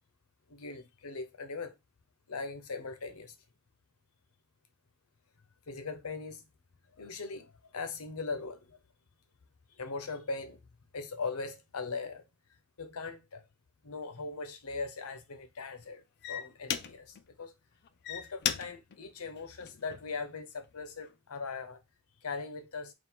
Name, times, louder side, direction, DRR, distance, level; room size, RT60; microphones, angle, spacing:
voice 1, 0.5-1.7 2.3-3.3 5.7-6.4 6.9-8.8 9.7-10.6 10.9-12.2 12.8-13.4 13.8-17.5 18.1-21.8 22.2-22.9, left 4 dB, 85° left, 0.7 m, -40 dB
sound 1, 14.0-14.2 14.8-15.1 15.8-15.9 16.2-17.3 17.8-20.2 20.8-21.1, left 9 dB, 50° left, 0.4 m, -37 dB
3.7 x 2.3 x 4.4 m
head